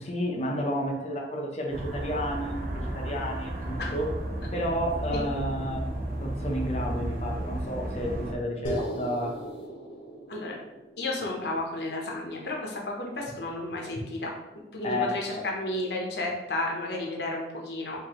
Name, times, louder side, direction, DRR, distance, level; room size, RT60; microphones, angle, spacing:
voice 1, 0.0-4.1 4.5-9.3 14.8-15.4, equal, 35° left, 0 dB, 0.7 m, -31 dB
sound 1, 1.7-8.3, right 1 dB, 50° right, 0.6 m, -33 dB
sound 2, 8.6-13.0, right 1 dB, 85° left, 1.2 m, -38 dB
voice 2, 11.0-14.3 14.7-18.0, left 2 dB, 60° left, -1 dB, 0.8 m, -32 dB
4.8 x 2.7 x 2.9 m, 0.99 s
head